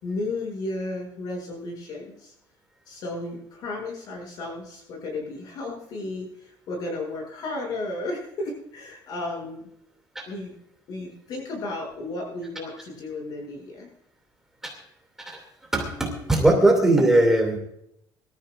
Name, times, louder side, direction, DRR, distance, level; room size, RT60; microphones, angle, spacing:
voice 1, 0.0-2.3 2.9-9.7 10.3-10.6 10.9-13.9, left 2 dB, 55° left, 0 dB, 7.0 m, -33 dB
voice 2, 15.7-17.6, right 2 dB, 5° right, 0 dB, 2.6 m, -20 dB
24.0 x 14.0 x 2.5 m, 0.75 s
cardioid pair, 170°, 8 cm